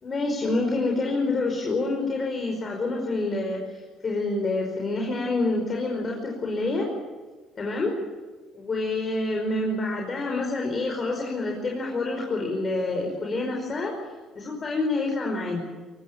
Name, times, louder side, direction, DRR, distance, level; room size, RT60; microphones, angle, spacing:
voice 1, 0.0-6.9 7.6-7.9 8.5-13.9 14.4-15.6, left 2 dB, 35° left, 0 dB, 5.1 m, -27 dB
23.0 x 18.5 x 8.8 m, 1.3 s
cardioid pair, 95°, 0 cm